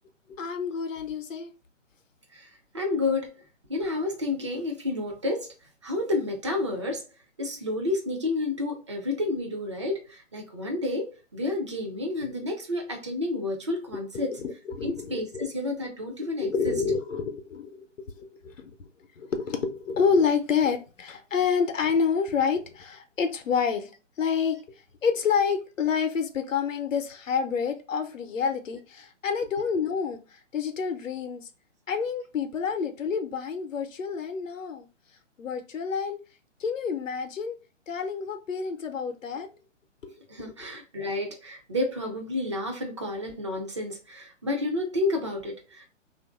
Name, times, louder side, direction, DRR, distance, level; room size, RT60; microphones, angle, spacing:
voice 1, 0.4-1.5 14.1-15.5 16.4-17.9 18.1-18.9 19.2-23.9 24.2-31.5 31.9-34.9 35.4-36.2 36.6-37.5 37.9-39.5 40.0-40.1 40.4-40.5, left 6 dB, 85° left, 0.7 m, -28 dB
voice 2, 2.7-3.4 3.7-5.5 5.8-7.0 7.4-14.4 14.8-16.7 40.3-45.9, left 2 dB, 25° right, 0.4 m, -30 dB
2.9 x 2.5 x 2.3 m
figure-of-eight pair, 140°, 38 cm